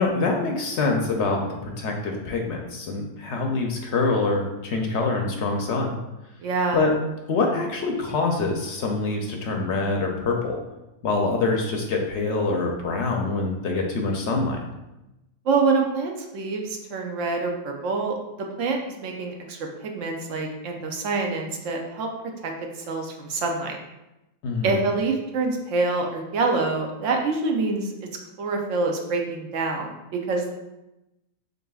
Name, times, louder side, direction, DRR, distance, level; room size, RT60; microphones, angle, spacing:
voice 1, 0.0-6.0 6.7-6.9 7.3-10.6 11.0-14.6 24.4-24.8, left 3 dB, 65° left, 2 dB, 0.8 m, -25 dB
voice 2, 6.4-6.8 15.5-22.1 22.4-22.5 22.9-23.8 24.6-28.1 28.4-30.5, right 3 dB, 70° right, 2 dB, 0.9 m, -26 dB
6.6 x 2.6 x 2.3 m, 0.95 s
omnidirectional pair, 1.4 m